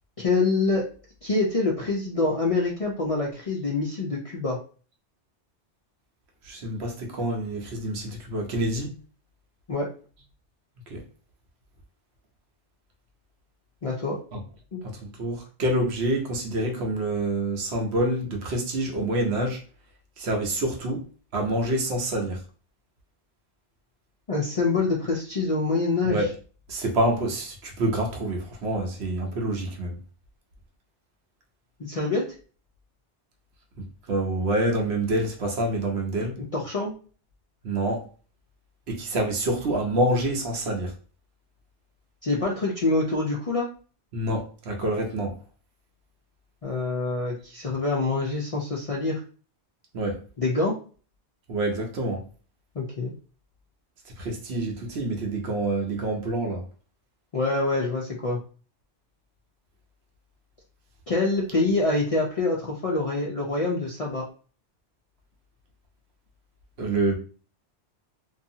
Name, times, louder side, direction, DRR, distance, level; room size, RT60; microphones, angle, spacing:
voice 1, 0.2-0.9 1.2-4.6 9.7-9.9 13.8-14.2 14.7-14.8 24.3-26.3 31.8-32.2 36.5-36.9 42.2-43.7 46.6-49.2 50.4-50.8 52.8-53.1 57.3-58.4 61.1-64.3, left 3 dB, 50° left, -3 dB, 0.4 m, -25 dB
voice 2, 6.4-8.9 10.9-11.0 14.3-14.4 14.8-19.6 20.2-21.0 21.3-22.4 26.0-26.3 26.7-30.0 33.8-36.3 37.6-38.0 38.9-40.9 44.1-45.3 49.9-50.2 51.5-52.3 54.2-56.6 66.8-67.2, right 1 dB, 65° right, 1 dB, 1.0 m, -27 dB
2.7 x 2.3 x 2.6 m, 0.39 s
omnidirectional pair, 1.2 m